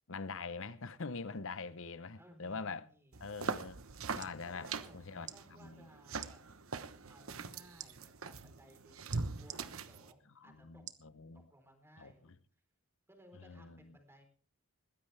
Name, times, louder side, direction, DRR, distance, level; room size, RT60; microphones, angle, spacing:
voice 1, 0.1-2.9 3.2-3.8 4.1-4.7 4.9-5.3 5.6-5.9 10.4-11.4 12.0-12.3 13.3-14.0, left 4 dB, 60° left, 0.9 m, -44 dB
voice 2, 2.2-3.2 4.4-6.4 7.1-10.8 11.3-12.4 13.1-14.2, equal, 10° right, 4.0 m, -61 dB
sound 1, 3.1-10.1, right 4 dB, 65° right, 1.1 m, -42 dB
sound 2, 4.2-4.4 5.2-5.4 6.1-6.3 7.8-7.9 9.1-9.6 10.9-11.1 11.7-11.8, right 10 dB, 35° right, 1.0 m, -47 dB
21.5 x 15.5 x 3.4 m
head